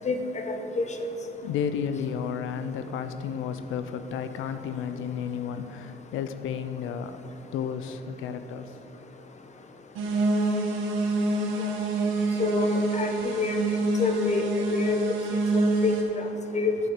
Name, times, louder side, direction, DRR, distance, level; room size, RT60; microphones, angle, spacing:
voice 1, 0.0-0.9 12.4-13.7 14.0-15.2 15.5-16.3 16.5-16.7, left 4 dB, 35° left, 6 dB, 0.8 m, -27 dB
voice 2, 1.4-7.2 7.5-8.7, left 7 dB, 85° left, 10 dB, 0.5 m, -32 dB
sound 1, 10.0-16.0, right 2 dB, 90° right, 1.1 m, -26 dB
10.0 x 6.9 x 3.8 m, 2.9 s
cardioid pair, 90°, 20 cm